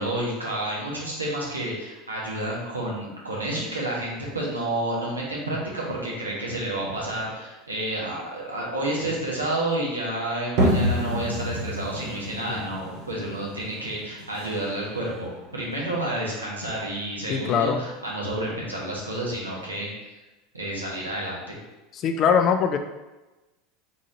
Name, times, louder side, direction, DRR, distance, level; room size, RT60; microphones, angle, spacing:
voice 1, 0.0-19.9 20.5-21.6, right 1 dB, 80° right, -4 dB, 1.0 m, -30 dB
sound 1, 10.6-16.0, equal, 50° right, 0.9 m, -28 dB
voice 2, 17.3-17.8 21.9-22.8, left 7 dB, 40° left, 7 dB, 0.4 m, -22 dB
4.0 x 3.7 x 2.7 m, 1.1 s
figure-of-eight pair, 75°, 0 cm